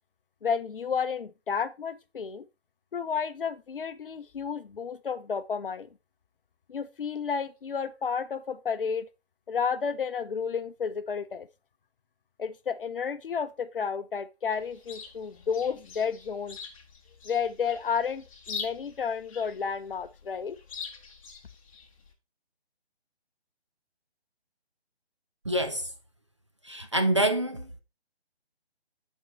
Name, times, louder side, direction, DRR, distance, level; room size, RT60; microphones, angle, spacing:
voice 1, 0.4-2.4 2.9-5.9 6.7-9.1 9.5-11.5 12.4-16.6 17.2-20.6, left 6 dB, 55° left, 0.7 m, -31 dB
Chirp tweet, 14.5-22.1, left 5 dB, 30° left, 1.2 m, -44 dB
voice 2, 25.5-25.9 26.6-27.8, right 1 dB, 30° right, 0.4 m, -26 dB
11.0 x 4.5 x 3.1 m
figure-of-eight pair, 160°, 32 cm